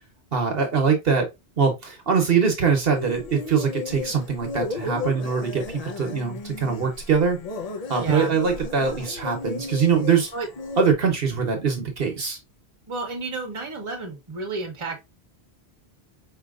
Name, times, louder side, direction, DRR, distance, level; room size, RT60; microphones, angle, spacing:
voice 1, 0.3-1.3 1.6-7.4 7.9-10.3 10.8-12.4, right 6 dB, 65° right, 1.1 m, -23 dB
sound 1, 2.9-10.9, left 3 dB, 45° left, 0.6 m, -34 dB
voice 2, 8.0-8.3 10.3-10.5 12.9-15.0, right 3 dB, 30° right, 1.0 m, -31 dB
4.7 x 2.7 x 2.4 m
omnidirectional pair, 1.1 m